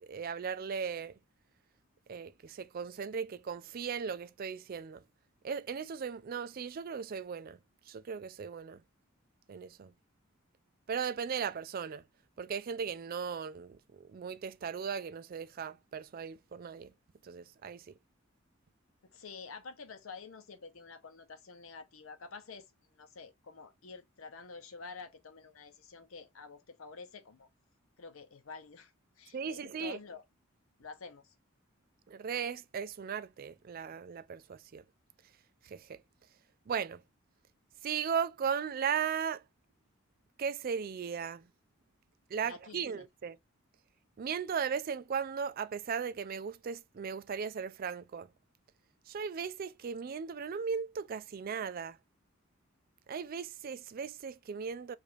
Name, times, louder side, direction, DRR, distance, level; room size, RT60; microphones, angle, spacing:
voice 1, 0.0-1.2 2.1-5.0 5.4-7.6 7.9-8.8 9.5-9.9 10.9-12.0 12.4-16.9 17.2-17.9 29.3-30.0 32.1-34.8 35.6-36.0 36.7-37.0 37.8-39.4 40.4-41.5 42.3-43.4 44.2-48.3 49.1-52.0 53.1-55.0, right 6 dB, 45° right, 0.3 m, -37 dB
voice 2, 19.1-27.5 28.0-30.2 30.8-31.3 42.4-43.1, left 4 dB, 75° left, 0.8 m, -49 dB
4.9 x 2.5 x 2.6 m
head